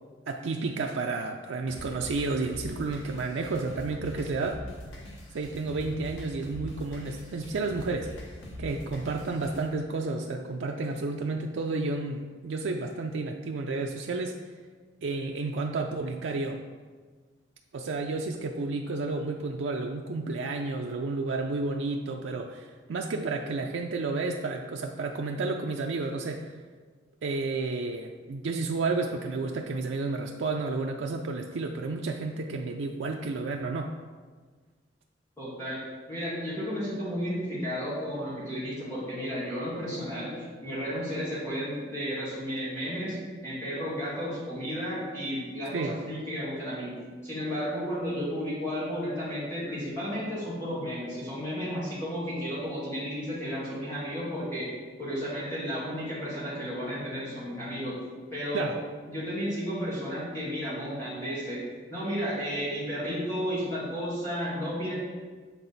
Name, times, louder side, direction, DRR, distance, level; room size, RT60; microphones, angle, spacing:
voice 1, 0.3-4.6 5.3-8.1 8.6-14.4 15.0-16.6 17.7-26.5 27.2-33.9 45.7-46.0 58.5-58.8, right 3 dB, 85° right, 2 dB, 0.4 m, -31 dB
sound 1, 1.7-9.7, left 1 dB, 85° left, 1.2 m, -43 dB
voice 2, 35.4-35.8 36.1-43.2 43.4-46.9 47.2-54.7 55.0-58.0 58.3-58.7 59.1-61.6 61.9-64.9, equal, 15° left, -10 dB, 2.0 m, -33 dB
7.4 x 3.8 x 4.0 m, 1.5 s
head